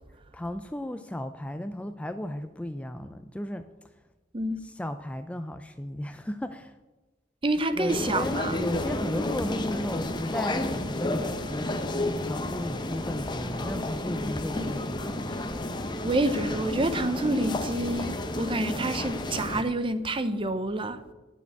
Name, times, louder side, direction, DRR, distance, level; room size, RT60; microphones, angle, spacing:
voice 1, 0.3-3.7 4.6-6.7 7.8-11.8 12.2-15.4, left 1 dB, 5° left, 0.3 m, -35 dB
voice 2, 7.4-8.6 14.5-14.8 16.0-21.0, right 1 dB, 25° right, 0.7 m, -28 dB
sound 1, 7.9-19.6, left 1 dB, 25° left, 0.8 m, -31 dB
9.6 x 6.9 x 8.2 m
head